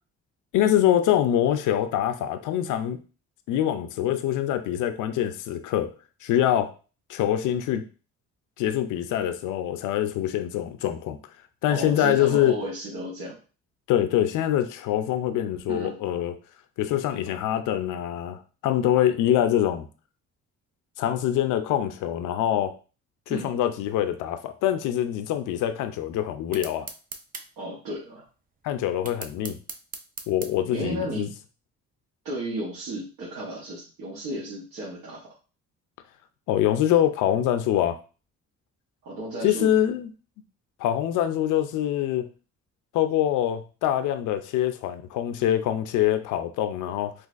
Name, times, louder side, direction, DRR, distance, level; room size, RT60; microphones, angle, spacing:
voice 1, 0.5-3.0 3.5-5.9 6.2-6.7 7.1-7.8 8.6-11.2 11.6-12.6 13.9-16.3 16.8-19.8 21.0-22.8 23.3-26.9 28.6-29.6 30.3-31.3 36.5-38.0 39.4-40.1 40.8-42.3 42.9-47.1, left 11 dB, 85° left, 9 dB, 0.5 m, -24 dB
voice 2, 11.7-13.3 15.7-16.0 23.3-23.5 27.6-28.2 30.7-31.3 32.2-35.3 39.0-39.7, right 1 dB, 85° right, -6 dB, 1.1 m, -33 dB
sound 1, 26.5-27.5 29.1-30.5, right 5 dB, 30° right, 0.4 m, -38 dB
3.9 x 2.4 x 2.4 m, 0.35 s
cardioid pair, 90°, 30 cm